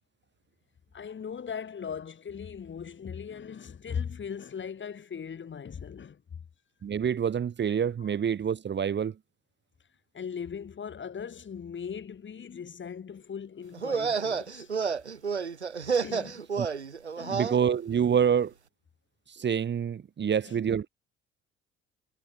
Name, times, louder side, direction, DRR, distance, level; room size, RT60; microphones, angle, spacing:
voice 1, 0.9-6.2 8.0-8.2 10.1-14.7 16.0-16.4 17.2-17.5 20.2-20.6, left 7 dB, 35° left, 3.5 m, -39 dB
voice 2, 6.8-9.1 16.6-16.7 17.3-18.5 19.3-20.9, right 8 dB, 35° right, 1.4 m, -27 dB
sound 1, 13.7-17.6, right 5 dB, 90° right, 0.7 m, -30 dB
figure-of-eight pair, 50°, 33 cm